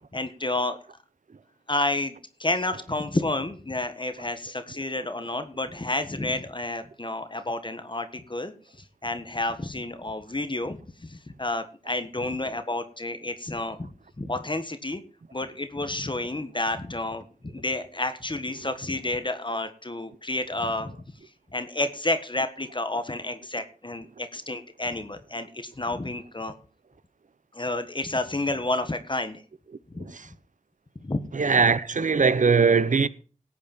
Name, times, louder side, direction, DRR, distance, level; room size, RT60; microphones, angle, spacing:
voice 1, 0.1-0.8 1.7-8.5 9.0-15.0 15.3-21.0 21.5-26.5 27.5-29.4 29.9-30.1 31.0-31.3, left 2 dB, 35° left, 1.6 m, -30 dB
voice 2, 30.0-30.3 31.3-33.1, right 5 dB, 65° right, 0.9 m, -21 dB
17.5 x 8.6 x 4.4 m
wide cardioid pair, 55°, 14 cm